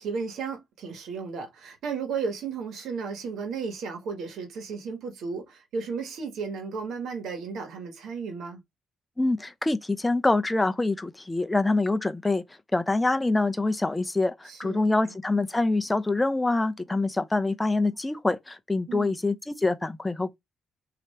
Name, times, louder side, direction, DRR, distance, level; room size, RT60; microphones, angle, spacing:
voice 1, 0.0-8.6 14.5-15.1 18.9-19.1, right 5 dB, 75° right, 1.5 m, -34 dB
voice 2, 9.2-12.4 12.7-20.4, left 2 dB, 15° left, 0.6 m, -25 dB
3.2 x 2.9 x 4.2 m
cardioid pair, 90°, 0 cm